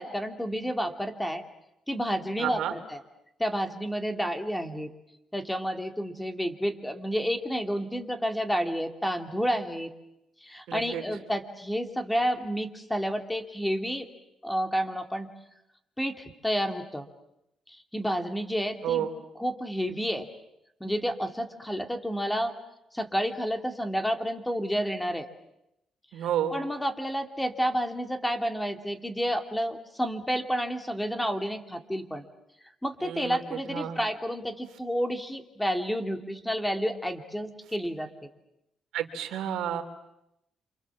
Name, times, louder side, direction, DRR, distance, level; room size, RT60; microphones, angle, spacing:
voice 1, 0.0-1.4 1.9-3.0 3.4-4.9 5.3-9.9 10.4-14.1 14.4-15.3 16.0-17.0 17.7-19.1 19.4-20.3 20.8-22.5 22.9-25.3 26.5-32.2 32.6-38.1, equal, 5° left, 6 dB, 2.8 m, -30 dB
voice 2, 2.4-2.7 10.7-11.0 18.8-19.2 26.1-26.6 33.0-34.0 38.9-39.8, right 10 dB, 85° right, 6 dB, 3.2 m, -31 dB
28.0 x 27.0 x 7.5 m, 0.84 s
cardioid pair, 90°, 0 cm